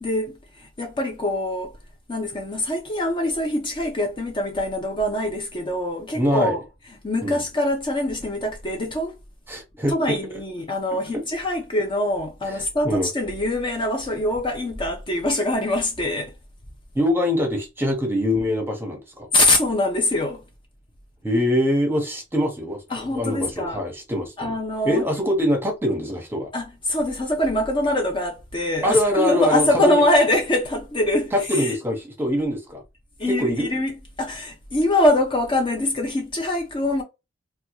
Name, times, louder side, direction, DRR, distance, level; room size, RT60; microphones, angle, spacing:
voice 1, 0.0-1.7 2.1-6.6 7.0-9.2 9.9-16.3 19.3-20.4 22.9-23.8 24.4-25.0 26.5-31.7 33.2-37.0, left 1 dB, 25° left, 0.6 m, -23 dB
voice 2, 6.1-6.5 7.2-7.4 9.5-10.2 11.1-11.2 12.5-13.1 16.9-19.3 21.2-24.6 24.8-26.5 28.8-30.0 31.3-32.8 33.3-33.7, equal, 10° right, 0.9 m, -24 dB
3.4 x 2.3 x 3.0 m
head